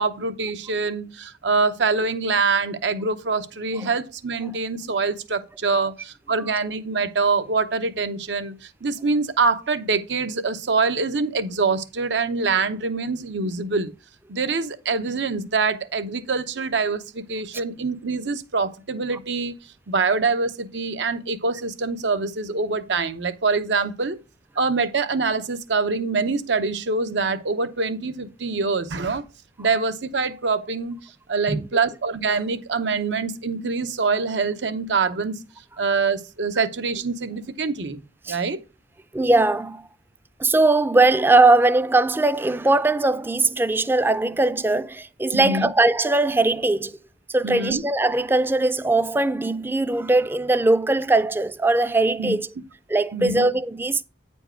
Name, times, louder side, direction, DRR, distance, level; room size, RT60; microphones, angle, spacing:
voice 1, 0.0-8.6 8.8-13.9 14.3-19.5 19.9-24.2 24.6-29.2 29.6-31.0 31.3-35.4 35.8-38.0 38.3-38.6 45.3-45.7 47.4-47.8 52.2-52.4 53.1-53.4, right 4 dB, 90° right, 0.8 m, -24 dB
voice 2, 39.1-39.9 40.4-47.0 47.3-52.5 52.9-54.0, right 2 dB, 10° right, 0.3 m, -20 dB
9.0 x 4.6 x 4.4 m
head